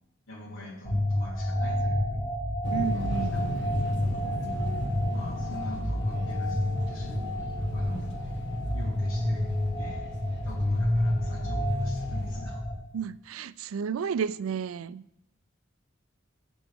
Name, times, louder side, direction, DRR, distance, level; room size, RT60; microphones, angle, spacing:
voice 1, 0.3-2.3 2.9-3.7 5.1-7.3 7.7-8.3 8.7-9.4 9.7-10.1 10.4-12.6, left 1 dB, 75° left, 3.4 m, -44 dB
sound 1, 0.8-12.7, left 1 dB, ahead, 2.2 m, -29 dB
sound 2, 2.6-12.4, equal, 60° left, 1.7 m, -38 dB
voice 2, 2.7-3.6 12.9-15.0, right 6 dB, 85° right, 0.4 m, -32 dB
15.0 x 7.0 x 3.5 m
head